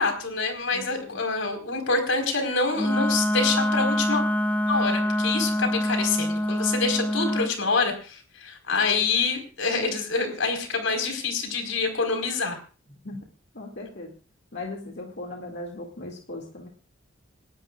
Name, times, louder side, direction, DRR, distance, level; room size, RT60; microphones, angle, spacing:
voice 1, 0.0-4.2 4.7-12.6, left 4 dB, 80° left, 4 dB, 4.6 m, -26 dB
voice 2, 0.7-1.2 5.2-5.7 13.0-13.2 13.5-14.1 14.5-16.7, left 2 dB, 55° left, 0 dB, 2.4 m, -38 dB
Wind instrument woodwind instrument, 2.7-7.5, left 1 dB, 10° left, 0.6 m, -25 dB
29.0 x 12.5 x 2.5 m, 0.38 s
head